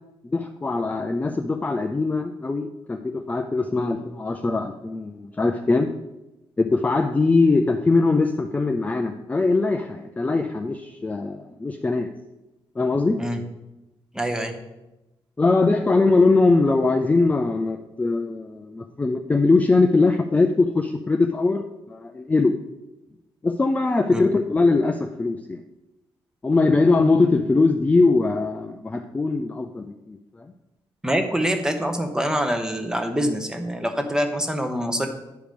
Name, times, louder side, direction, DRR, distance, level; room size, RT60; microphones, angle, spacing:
voice 1, 0.2-5.9 6.6-12.1 12.8-13.2 15.4-22.5 23.4-25.6 26.4-30.5, left 3 dB, 15° left, 5 dB, 0.4 m, -21 dB
voice 2, 14.1-14.5 24.1-24.2 31.0-35.1, equal, 5° right, 6 dB, 0.9 m, -25 dB
10.5 x 4.9 x 5.2 m, 0.99 s
wide cardioid pair, 150°, 10 cm